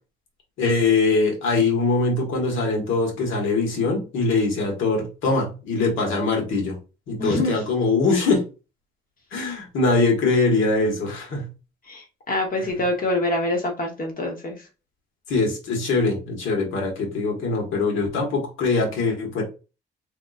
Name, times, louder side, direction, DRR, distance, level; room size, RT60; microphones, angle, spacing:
voice 1, 0.6-6.8 7.1-8.4 9.3-11.5 15.3-19.4, left 3 dB, 80° left, 0 dB, 1.4 m, -22 dB
voice 2, 7.2-7.6 11.8-14.7, left 1 dB, 45° left, 2 dB, 1.0 m, -25 dB
3.7 x 2.8 x 2.4 m, 0.31 s
cardioid pair, 90°, 20 cm